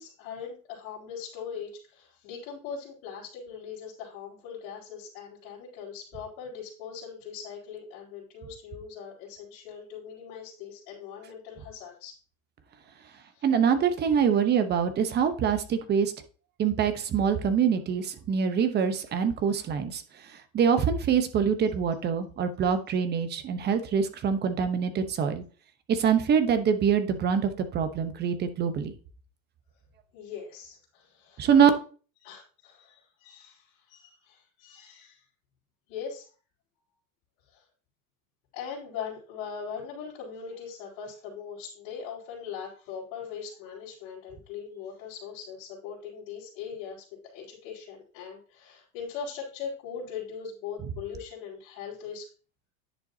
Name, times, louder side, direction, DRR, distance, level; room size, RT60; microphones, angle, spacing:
voice 1, 0.0-12.2 13.1-13.5 30.1-31.5 32.2-35.2 35.9-36.3 37.5-37.6 38.5-52.3, left 7 dB, 55° left, -7 dB, 4.1 m, -41 dB
voice 2, 13.4-16.1 16.6-20.0 20.5-25.4 25.9-28.9 31.4-31.7, right 7 dB, 25° right, 9 dB, 1.0 m, -24 dB
10.5 x 6.8 x 2.8 m, 0.38 s
supercardioid pair, 140°, 42 cm